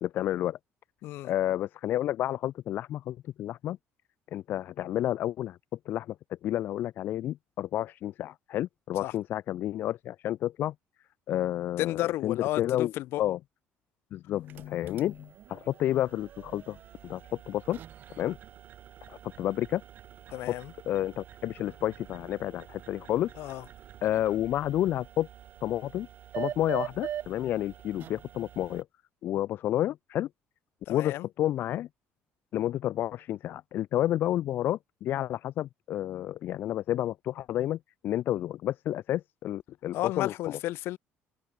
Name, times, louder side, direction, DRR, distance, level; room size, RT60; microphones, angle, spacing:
voice 1, 0.0-0.6 1.2-3.8 4.3-5.6 5.9-6.2 6.4-10.7 11.3-12.9 13.2-13.4 14.1-16.8 17.0-17.8 18.2-18.4 19.1-19.8 20.5-20.6 20.9-23.3 24.0-25.3 25.6-26.1 26.3-28.8 29.2-30.3 30.9-31.9 32.5-40.6, left 12 dB, 50° left, 0.6 m, -30 dB
voice 2, 1.0-1.3 9.0-9.1 11.8-13.2 20.3-20.7 23.4-23.6 30.9-31.3 39.9-41.0, left 16 dB, 65° left, 5.4 m, -32 dB
sound 1, 14.4-28.8, right 11 dB, 45° right, 7.2 m, -44 dB
cardioid pair, 160°, 4 cm